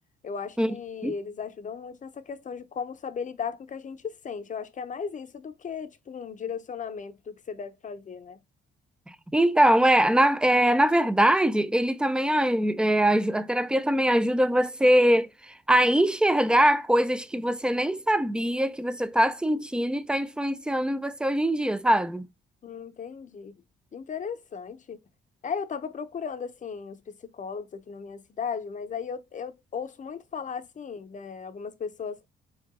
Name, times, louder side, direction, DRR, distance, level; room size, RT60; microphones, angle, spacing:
voice 1, 0.2-8.4 22.6-23.5 23.9-25.0 25.4-32.2, left 6 dB, 40° left, 0.7 m, -36 dB
voice 2, 9.3-22.3, right 1 dB, 5° right, 0.4 m, -22 dB
4.7 x 2.4 x 3.7 m
cardioid pair, 90°, 20 cm